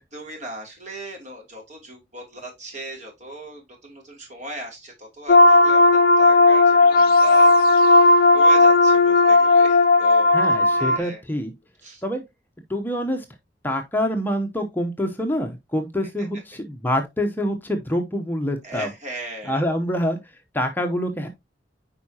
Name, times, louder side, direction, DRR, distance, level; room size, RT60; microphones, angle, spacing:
voice 1, 0.0-8.0 8.3-10.4 10.8-11.2 11.8-12.0 18.6-19.6, right 1 dB, 45° right, 2.8 m, -38 dB
sound 1, 5.3-11.0, left 2 dB, 55° left, 0.5 m, -15 dB
voice 2, 10.3-11.5 12.0-12.2 12.7-13.2 13.6-18.9 19.4-20.2 20.5-21.3, equal, 10° left, 0.8 m, -26 dB
9.2 x 4.7 x 2.8 m
head